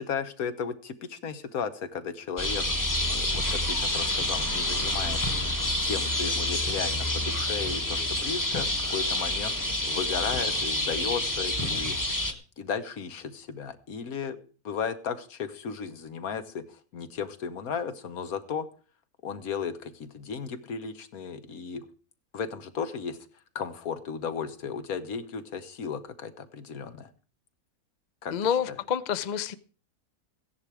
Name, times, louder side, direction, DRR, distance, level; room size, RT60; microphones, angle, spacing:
voice 1, 0.0-2.6 3.1-5.3 5.8-9.5 9.9-12.0 12.6-14.4 14.6-18.7 19.2-21.8 22.3-23.2 23.5-27.1 28.2-28.8, left 6 dB, 75° left, 11 dB, 1.6 m, -35 dB
sound 1, 2.4-12.3, left 1 dB, 15° left, 1.1 m, -28 dB
voice 2, 28.3-29.5, left 8 dB, 45° left, 14 dB, 0.5 m, -28 dB
15.0 x 10.5 x 4.8 m, 0.39 s
omnidirectional pair, 1.6 m